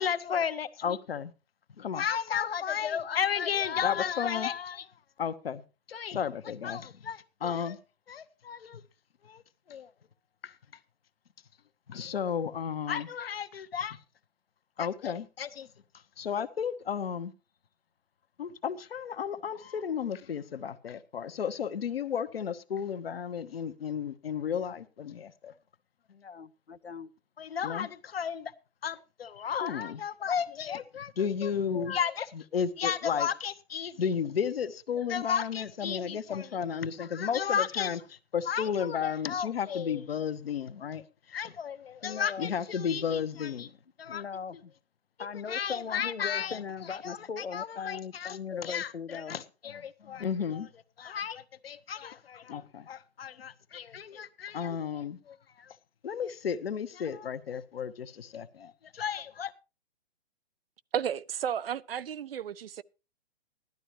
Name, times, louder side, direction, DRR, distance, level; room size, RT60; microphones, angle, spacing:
voice 1, 0.0-1.3 1.8-4.9 5.2-5.6 5.9-7.8 8.1-8.8 9.2-9.4 9.7-9.9 10.4-10.5 11.9-14.0 14.8-15.7 16.2-17.3 18.4-25.5 27.4-28.5 28.8-41.0 41.3-43.7 44.0-44.2 45.5-46.6 47.0-50.7 51.0-55.7 56.0-59.5, left 7 dB, 65° left, 1.2 m, -33 dB
voice 2, 26.1-27.1 42.0-42.5 44.1-44.7 45.2-49.4, left 6 dB, 85° left, 0.9 m, -39 dB
voice 3, 60.9-62.8, right 9 dB, 65° right, 0.6 m, -33 dB
16.5 x 12.0 x 3.1 m
figure-of-eight pair, 120°, 32 cm